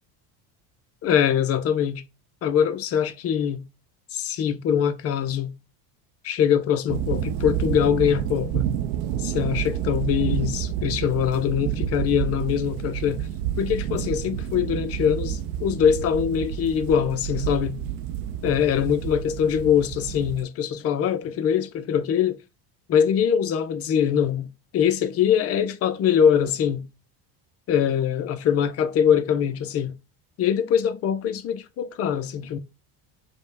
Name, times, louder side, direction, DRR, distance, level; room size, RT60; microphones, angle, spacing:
voice 1, 1.0-2.0 2.4-3.6 4.1-5.5 6.2-8.7 9.2-13.3 13.6-17.8 18.4-22.4 22.9-24.5 24.7-26.8 27.7-29.9 30.4-32.6, left 8 dB, 35° left, 0.4 m, -23 dB
sound 1, 6.9-20.4, right 10 dB, 85° right, 0.6 m, -29 dB
5.2 x 2.2 x 3.2 m
cardioid pair, 150°, 46 cm